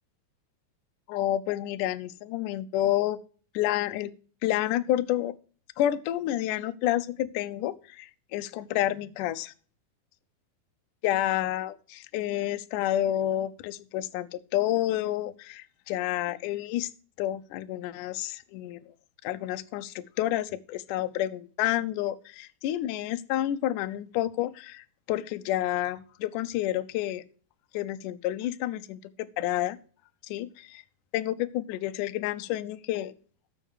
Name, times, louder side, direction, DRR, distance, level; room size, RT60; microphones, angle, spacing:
voice 1, 1.1-3.2 3.5-4.1 4.4-5.3 5.8-9.5 11.0-16.9 17.2-18.8 19.2-27.2 27.7-29.8 30.3-30.8 31.1-33.1, left 13 dB, 80° left, 11 dB, 1.9 m, -29 dB
14.0 x 5.5 x 4.8 m, 0.40 s
omnidirectional pair, 4.4 m